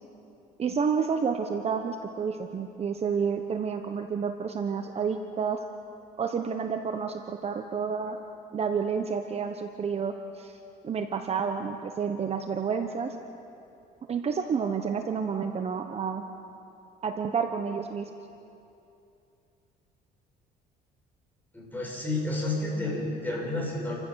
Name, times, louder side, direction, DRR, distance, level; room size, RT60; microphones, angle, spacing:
voice 1, 0.6-5.6 6.2-8.2 8.5-10.6 10.8-13.2 14.1-16.2 17.0-18.1, right 6 dB, 40° right, 6 dB, 1.1 m, -30 dB
voice 2, 21.5-23.9, left 2 dB, 10° left, -4 dB, 7.2 m, -30 dB
29.5 x 15.0 x 6.5 m, 2.7 s
cardioid pair, 110°, 17 cm